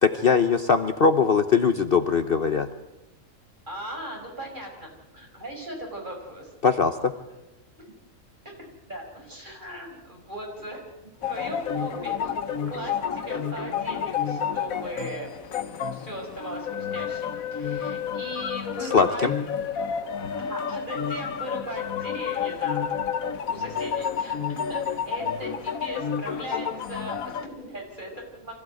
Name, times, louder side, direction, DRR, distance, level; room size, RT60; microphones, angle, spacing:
voice 1, 0.0-2.7 6.6-7.1 18.8-19.3, left 5 dB, 45° left, 8 dB, 1.0 m, -21 dB
voice 2, 3.7-6.5 7.3-7.4 7.8-7.9 8.8-10.8 11.3-12.3 12.7-15.3 15.9-19.3 20.3-22.9 23.5-28.5, right 1 dB, 35° right, 0 dB, 5.5 m, -38 dB
sound 1, 11.2-27.4, left 7 dB, 85° left, 1.4 m, -30 dB
25.0 x 15.5 x 9.2 m, 0.98 s
omnidirectional pair, 1.4 m